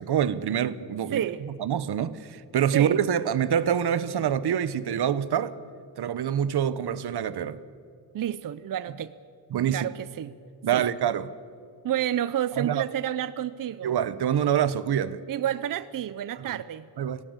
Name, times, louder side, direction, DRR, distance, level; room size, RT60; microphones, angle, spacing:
voice 1, 0.1-1.2 1.6-5.6 6.0-7.6 9.5-9.9 10.6-11.3 12.6-12.8 13.8-15.2 16.4-16.6 17.0-17.2, right 9 dB, 85° right, 1.0 m, -26 dB
voice 2, 1.1-1.4 2.7-3.0 8.1-9.1 9.7-10.3 10.7-10.9 11.8-14.0 15.3-16.9, right 11 dB, 60° right, 0.6 m, -29 dB
25.5 x 17.0 x 8.2 m
wide cardioid pair, 160°, 38 cm